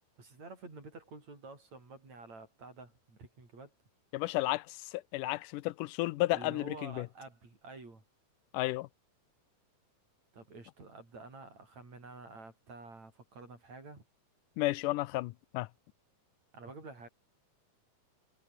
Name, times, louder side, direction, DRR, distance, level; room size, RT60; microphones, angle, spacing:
voice 1, 0.2-3.7 6.3-8.0 10.3-14.0 16.5-17.1, right 3 dB, 60° right, 8.2 m, -49 dB
voice 2, 4.1-7.1 8.5-8.9 14.6-15.7, left 19 dB, 90° left, 2.3 m, -33 dB
omnidirectional pair, 3.6 m